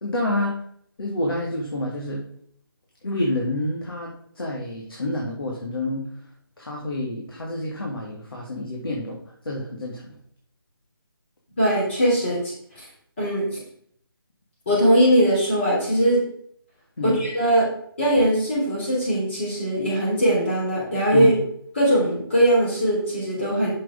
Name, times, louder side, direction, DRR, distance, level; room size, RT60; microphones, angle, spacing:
voice 1, 0.0-0.5 1.0-2.2 3.0-6.1 6.6-9.2 9.5-10.1 17.0-17.2 21.1-21.3, left 1 dB, 70° left, -2 dB, 2.1 m, -28 dB
voice 2, 11.6-12.4 12.7-12.9 13.2-13.6 14.6-16.2 17.0-17.7 18.0-21.3 21.7-23.7, right 1 dB, 30° left, -6 dB, 3.3 m, -20 dB
7.6 x 6.7 x 3.7 m, 0.64 s
hypercardioid pair, 175°, 13 cm